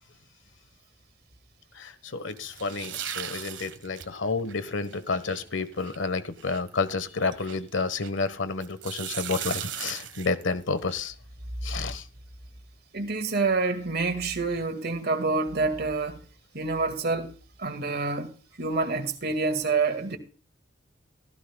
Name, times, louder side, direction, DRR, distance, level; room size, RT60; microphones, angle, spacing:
voice 1, 1.7-11.1 11.6-12.1, left 4 dB, 90° left, 1.3 m, -30 dB
sound 1, 2.3-8.3 8.6-10.9, right 10 dB, 75° right, 1.5 m, -38 dB
voice 2, 12.9-16.2 16.5-17.3 17.6-18.3 18.6-20.2, right 3 dB, 55° right, 2.0 m, -27 dB
15.5 x 15.0 x 2.3 m
head